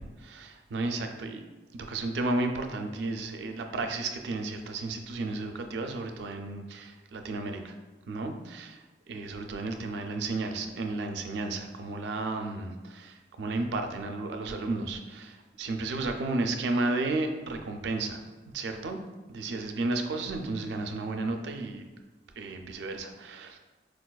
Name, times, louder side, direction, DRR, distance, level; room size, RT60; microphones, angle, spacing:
voice 1, 0.0-1.4 1.7-7.7 8.1-8.8 9.1-18.2 18.5-19.0 19.3-21.9 22.4-23.6, right 2 dB, 85° right, 5 dB, 0.3 m, -33 dB
4.5 x 2.3 x 2.2 m, 1.2 s
head